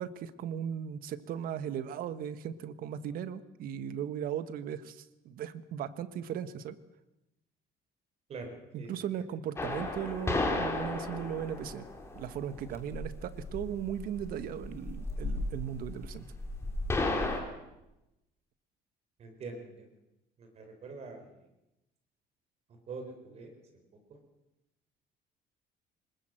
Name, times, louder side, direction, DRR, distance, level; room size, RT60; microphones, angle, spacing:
voice 1, 0.0-6.8 8.7-11.9 12.1-16.2, right 9 dB, 55° right, 13 dB, 1.3 m, -37 dB
voice 2, 8.3-8.9 19.2-19.9 20.4-21.3 22.9-23.5 23.9-24.2, right 3 dB, 40° right, 5 dB, 4.5 m, -44 dB
sound 1, 9.6-17.4, left 2 dB, 15° left, 3.2 m, -34 dB
25.0 x 20.5 x 7.7 m, 0.94 s
cardioid pair, 170°, 17 cm